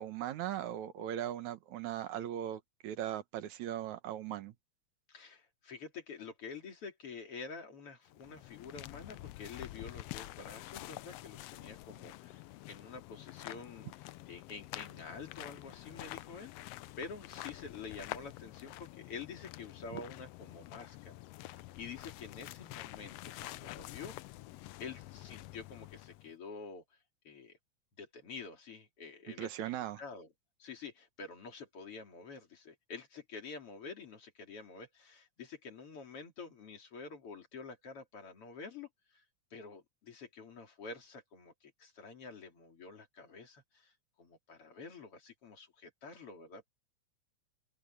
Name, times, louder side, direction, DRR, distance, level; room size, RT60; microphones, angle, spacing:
voice 1, 0.0-4.5 19.9-20.0 29.4-30.0, right 11 dB, 75° right, 2.4 m, -39 dB
voice 2, 5.1-16.7 17.0-24.1 24.8-26.8 27.3-27.6 28.0-30.3 30.6-39.2 39.5-43.9 44.2-46.7, left 5 dB, 50° left, 3.6 m, -48 dB
sound 1, 8.0-26.3, left 17 dB, 90° left, 1.4 m, -48 dB
omnidirectional pair, 3.4 m